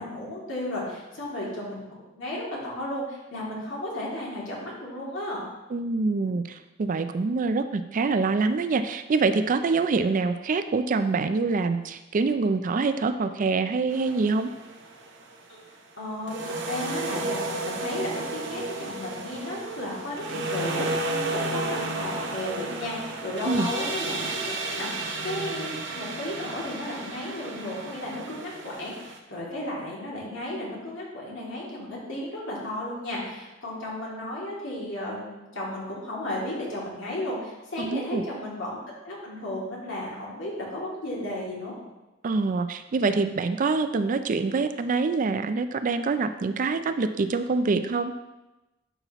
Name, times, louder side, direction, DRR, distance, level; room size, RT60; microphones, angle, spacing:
voice 1, 0.0-5.4 15.5-15.6 16.0-21.1 21.3-38.8 39.0-41.7, left 1 dB, 65° left, -5 dB, 2.6 m, -34 dB
voice 2, 5.7-14.5 23.5-23.7 37.8-38.2 42.2-48.1, right 4 dB, 40° right, 10 dB, 0.4 m, -25 dB
sound 1, 13.9-15.3 16.3-29.2, right 2 dB, 65° right, 0.9 m, -33 dB
11.0 x 5.6 x 3.0 m, 1.0 s
head